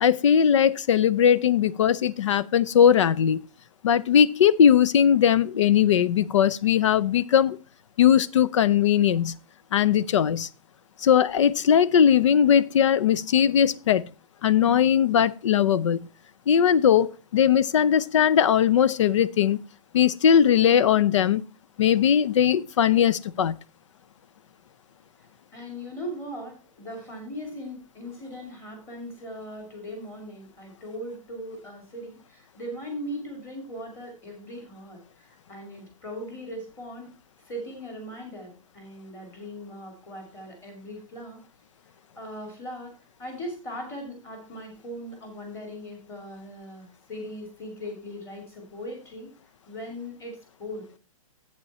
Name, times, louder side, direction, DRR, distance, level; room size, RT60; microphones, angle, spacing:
voice 1, 0.0-3.4 3.8-7.6 8.0-9.4 9.7-10.5 11.0-14.0 14.4-16.1 16.5-19.6 19.9-21.4 21.8-23.6, left 8 dB, 55° left, 0.5 m, -20 dB
voice 2, 25.5-37.1 37.5-41.4 42.2-42.9 43.2-49.3 49.7-51.0, equal, 15° left, 2.5 m, -39 dB
8.3 x 8.2 x 4.2 m
hypercardioid pair, 170°, 19 cm